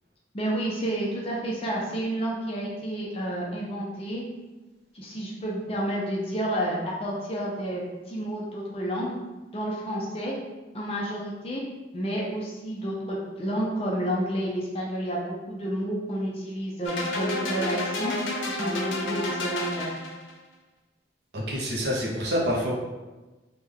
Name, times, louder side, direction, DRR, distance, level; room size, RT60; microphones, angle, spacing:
voice 1, 0.3-4.2 4.9-9.1 9.5-10.3 10.7-11.6 11.9-18.1 18.5-19.9, right 1 dB, 30° left, -3 dB, 0.5 m, -30 dB
sound 1, 16.8-20.3, left 1 dB, 90° left, 0.6 m, -30 dB
voice 2, 21.3-22.8, equal, 60° right, -3 dB, 0.6 m, -27 dB
3.3 x 2.2 x 3.5 m, 1.2 s
head